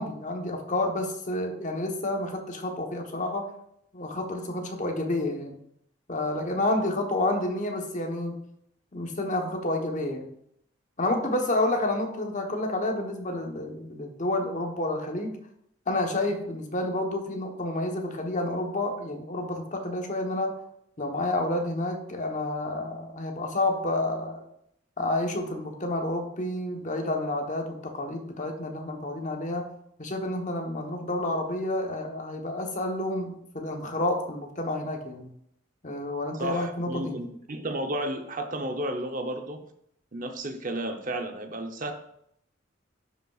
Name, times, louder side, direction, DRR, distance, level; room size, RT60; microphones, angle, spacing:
voice 1, 0.0-3.5 3.9-5.6 6.1-8.4 8.9-10.3 11.0-15.4 15.9-20.6 21.0-24.4 25.0-29.7 30.0-35.3 35.8-37.2, left 1 dB, 40° left, 3 dB, 1.1 m, -29 dB
voice 2, 36.4-39.6 40.1-41.9, right 1 dB, 40° right, 5 dB, 0.7 m, -32 dB
11.0 x 5.4 x 2.4 m, 0.72 s
head